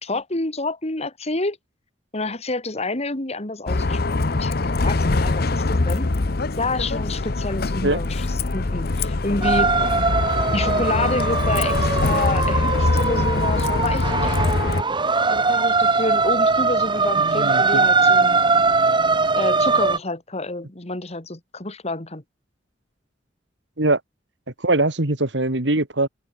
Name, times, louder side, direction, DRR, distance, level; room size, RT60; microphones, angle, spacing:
voice 1, 0.0-1.6 2.1-4.6 4.8-6.1 6.6-8.3 8.5-9.7 10.5-14.6 15.3-18.4 19.4-22.2, left 2 dB, 35° left, 2.4 m, -28 dB
Bus, 3.7-14.8, left 3 dB, 60° left, 0.9 m, -23 dB
sound 1, 9.4-20.0, right 4 dB, 25° right, 1.5 m, -21 dB
voice 2, 17.2-17.9 23.8-24.0 24.6-26.1, right 2 dB, 75° right, 2.5 m, -22 dB
open air
head